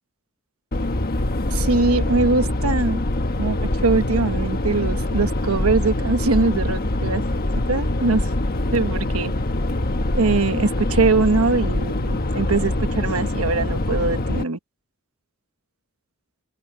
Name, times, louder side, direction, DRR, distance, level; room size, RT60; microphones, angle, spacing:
sound 1, 0.7-14.4, left 1 dB, 45° left, 1.4 m, -24 dB
voice 1, 1.5-3.0 3.4-7.2 7.7-8.2 8.7-9.3 10.1-14.6, right 3 dB, 75° right, 1.2 m, -22 dB
head